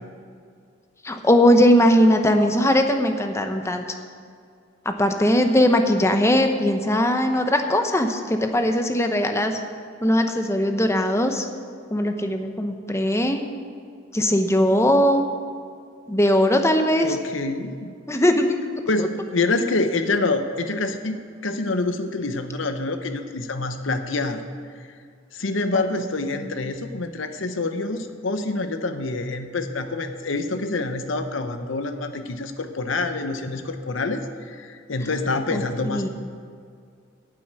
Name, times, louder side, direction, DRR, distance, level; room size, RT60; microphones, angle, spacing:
voice 1, 1.0-3.8 4.8-9.6 10.0-11.5 11.9-13.4 14.1-15.3 16.1-17.2 18.1-18.6 19.0-19.1 26.3-26.5 35.5-36.1, equal, 15° left, 5 dB, 0.9 m, -20 dB
voice 2, 17.0-17.9 18.9-24.4 25.3-36.1, left 3 dB, 70° left, 8 dB, 0.9 m, -26 dB
9.6 x 7.6 x 8.8 m, 2.2 s
head